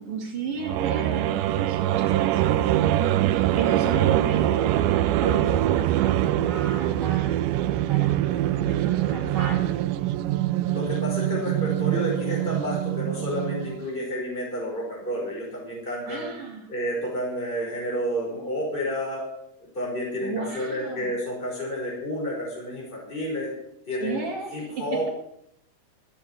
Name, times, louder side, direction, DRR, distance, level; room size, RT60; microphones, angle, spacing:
voice 1, 0.0-10.1 16.1-16.7 20.2-21.1 24.0-24.8, right 4 dB, 45° right, -6 dB, 3.3 m, -34 dB
sound 1, 0.6-13.9, right 13 dB, 80° right, 2.1 m, -24 dB
sound 2, 5.5-6.9, left 2 dB, 55° left, 3.0 m, -41 dB
voice 2, 10.7-16.3 16.7-19.2 19.6-23.5 23.9-24.2 24.5-25.1, equal, 15° left, -4 dB, 5.3 m, -30 dB
14.0 x 8.5 x 7.3 m, 0.73 s
omnidirectional pair, 3.8 m